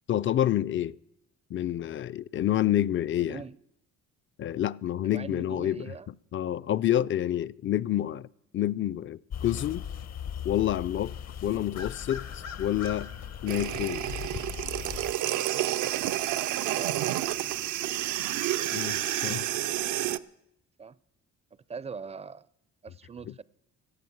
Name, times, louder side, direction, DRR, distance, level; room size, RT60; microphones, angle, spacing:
voice 1, 0.1-1.0 1.5-3.4 4.4-5.9 6.3-8.3 8.5-9.9 10.4-11.2 11.4-13.1 13.4-14.1 18.6-19.5, left 12 dB, 40° left, 0.4 m, -28 dB
voice 2, 3.1-3.6 5.0-6.1 11.4-11.7 16.6-17.1 20.8-21.0 21.7-22.5 22.8-23.4, right 5 dB, 20° right, 0.4 m, -42 dB
sound 1, 9.3-15.1, left 8 dB, 60° left, 0.9 m, -38 dB
sound 2, 13.5-20.2, right 13 dB, 75° right, 0.5 m, -30 dB
15.0 x 8.6 x 7.9 m
cardioid pair, 90°, 30 cm